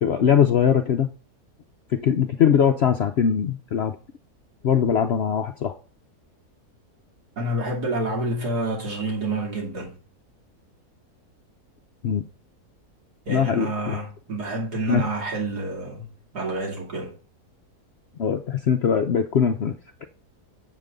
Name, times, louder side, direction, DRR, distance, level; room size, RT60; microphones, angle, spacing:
voice 1, 0.0-1.1 2.0-3.9 4.6-5.7 12.0-12.2 13.3-14.0 14.9-15.1 18.2-19.7 20.0-20.1, left 8 dB, 65° left, 0.6 m, -21 dB
voice 2, 7.4-10.0 13.3-17.1, right 2 dB, 80° right, 3.1 m, -28 dB
7.5 x 3.6 x 6.5 m
omnidirectional pair, 1.7 m